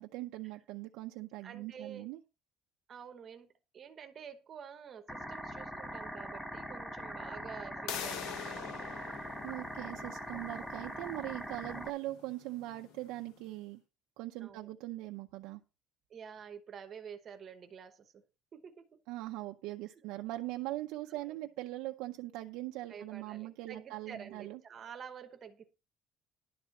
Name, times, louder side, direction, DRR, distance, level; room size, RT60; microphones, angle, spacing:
voice 1, 0.0-2.2 9.4-13.8 14.2-15.6 19.1-24.6, right 17 dB, 80° right, 0.6 m, -41 dB
voice 2, 1.4-2.1 2.9-8.9 14.4-14.7 16.1-18.2 18.5-19.0 21.1-21.3 22.9-25.7, right 7 dB, 30° right, 0.9 m, -49 dB
sound 1, 5.1-11.9, equal, 5° left, 0.7 m, -42 dB
sound 2, 7.9-13.5, left 9 dB, 70° left, 1.0 m, -46 dB
11.0 x 4.3 x 7.0 m
cardioid pair, 180°, 0 cm